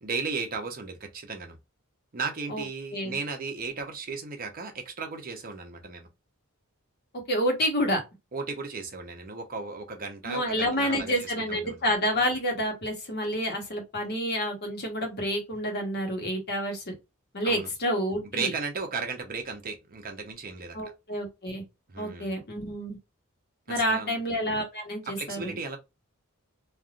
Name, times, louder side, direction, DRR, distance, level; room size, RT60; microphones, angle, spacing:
voice 1, 0.0-1.6 2.1-6.1 8.3-11.8 17.4-17.7 18.3-20.9 21.9-22.3 23.7-24.2 25.1-25.8, right 4 dB, 40° right, 0.8 m, -35 dB
voice 2, 7.3-8.0 10.2-16.9 17.3-18.5 20.7-21.6 22.0-23.0 23.7-25.6, equal, 50° left, 1.1 m, -29 dB
3.3 x 2.5 x 2.4 m
head